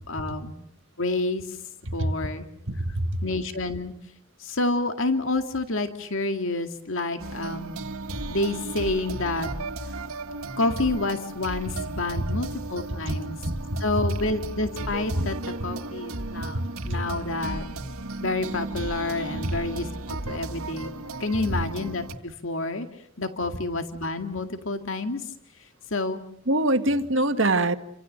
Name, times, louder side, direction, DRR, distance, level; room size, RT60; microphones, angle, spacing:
voice 1, 0.1-0.6 1.0-1.6 1.9-2.5 3.2-3.9 4.4-7.8 8.3-9.5 9.8-10.0 10.6-13.4 13.8-17.7 18.2-20.9 21.2-25.3 25.6-26.2, left 2 dB, 65° left, 6 dB, 2.1 m, -29 dB
voice 2, 2.7-3.2 13.1-13.2 13.4-13.5 16.9-17.0 26.5-27.8, right 1 dB, 60° right, 7 dB, 2.0 m, -23 dB
sound 1, 7.2-22.1, right 2 dB, 85° right, 2.0 m, -35 dB
29.5 x 26.0 x 6.6 m, 0.76 s
head